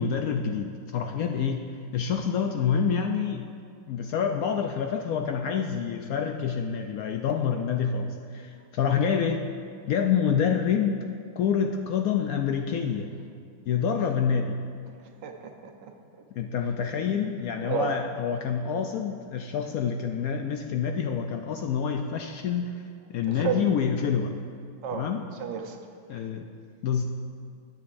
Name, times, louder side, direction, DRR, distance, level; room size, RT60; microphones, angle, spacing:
voice 1, 0.0-1.7 1.9-3.5 3.9-9.5 9.9-11.1 11.4-13.1 13.7-14.6 16.3-24.3 24.9-25.2 26.1-26.5 26.8-27.0, left 7 dB, 70° left, 4 dB, 0.9 m, -27 dB
voice 2, 15.2-15.9 16.6-16.7 17.6-18.0 18.3-18.4 23.3-23.7 24.8-25.8, right 7 dB, 85° right, 4 dB, 1.5 m, -32 dB
16.5 x 9.5 x 2.6 m, 2.3 s
omnidirectional pair, 1.9 m